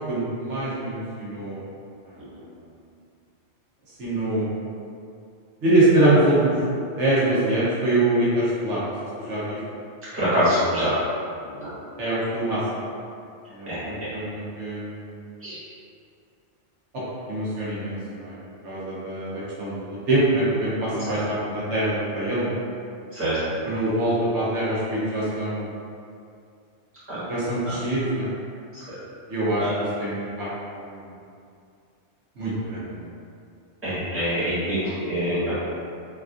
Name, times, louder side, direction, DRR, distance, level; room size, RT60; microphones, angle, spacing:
voice 1, 0.1-1.6 4.0-4.5 5.6-6.5 7.0-8.9 9.2-9.6 12.0-12.8 13.5-15.2 16.9-17.0 17.3-18.4 18.6-22.6 23.7-25.7 27.3-28.3 29.3-31.0 32.4-33.0 34.7-35.2, right 1 dB, 80° right, -9 dB, 1.1 m, -24 dB
voice 2, 10.1-10.9 11.5-11.7 13.7-13.8 15.4-15.6 21.1-21.2 23.1-23.4 27.1-27.2 27.7-27.8 28.7-28.8 29.6-29.8 33.8-35.5, equal, 10° right, -13 dB, 1.2 m, -25 dB
3.5 x 2.4 x 2.4 m, 2.4 s
omnidirectional pair, 1.2 m